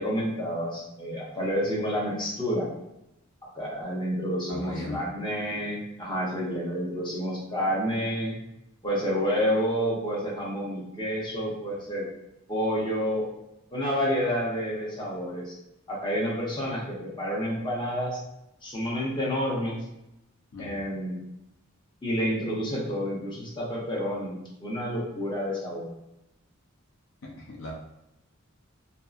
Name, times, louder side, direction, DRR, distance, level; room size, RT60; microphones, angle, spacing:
voice 1, 0.0-2.7 3.5-8.4 8.8-12.1 12.5-13.3 13.7-15.5 15.9-18.2 18.6-19.8 20.6-21.2 22.0-25.9, equal, 20° left, -5 dB, 0.7 m, -29 dB
voice 2, 4.5-5.0 20.5-20.8 27.2-27.7, left 2 dB, 65° left, -1 dB, 0.5 m, -38 dB
2.6 x 2.4 x 2.3 m, 0.88 s
head